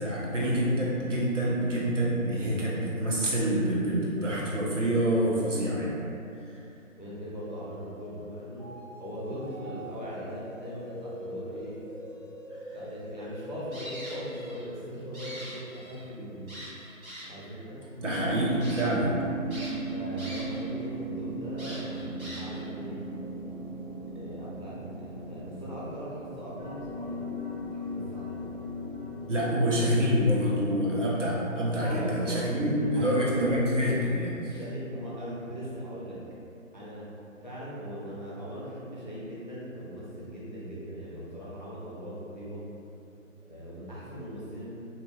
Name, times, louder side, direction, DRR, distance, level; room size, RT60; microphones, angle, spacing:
voice 1, 0.0-6.0 6.5-6.6 18.0-19.1 29.3-34.6, equal, 60° right, -6 dB, 0.8 m, -27 dB
voice 2, 7.0-8.7 9.0-11.8 12.7-16.5 17.3-17.8 18.7-19.0 19.9-23.1 24.1-27.3 27.7-28.5 31.8-33.3 34.5-36.2 36.7-37.1 37.4-42.6 43.5-44.7, equal, 35° left, -8 dB, 0.4 m, -40 dB
sound 1, 7.7-14.3, equal, 35° right, 1.5 m, -43 dB
sound 2, 13.7-14.7 15.0-16.0 16.5-17.5 18.0-18.1 18.6-18.8 19.5-20.7 21.0-21.1 21.6-22.7, equal, 80° right, 1.4 m, -43 dB
sound 3, 18.0-29.5, right 1 dB, 10° right, 0.8 m, -37 dB
2.8 x 2.6 x 2.3 m, 2.7 s
figure-of-eight pair, 155°, 41 cm